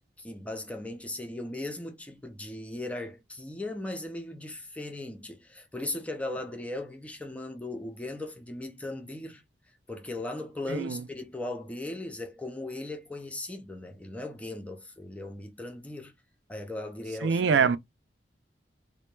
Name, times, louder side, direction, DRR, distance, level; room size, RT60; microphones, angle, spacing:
voice 1, 0.2-9.4 9.9-16.1 16.5-17.7, left 2 dB, 10° left, 0.4 m, -38 dB
voice 2, 10.7-11.0 17.2-17.8, right 6 dB, 75° right, 0.4 m, -24 dB
2.1 x 2.1 x 3.0 m
head